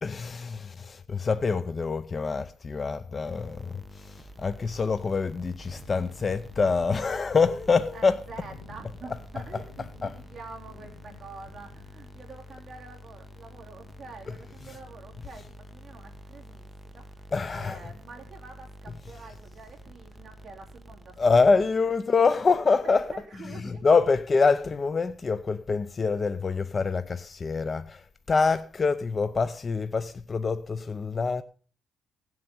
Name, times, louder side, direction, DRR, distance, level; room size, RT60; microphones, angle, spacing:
voice 1, 0.0-8.2 9.5-9.6 10.0-10.1 17.3-17.8 21.2-23.1 23.4-31.4, left 4 dB, 30° left, 0.5 m, -25 dB
sound 1, 3.2-22.0, left 1 dB, 5° right, 0.9 m, -48 dB
sound 2, 4.2-20.5, left 4 dB, 80° left, 1.6 m, -55 dB
voice 2, 7.9-15.4 15.7-21.3 22.8-23.9, right 4 dB, 25° right, 3.4 m, -47 dB
16.5 x 7.7 x 5.4 m
cardioid pair, 130°, 0 cm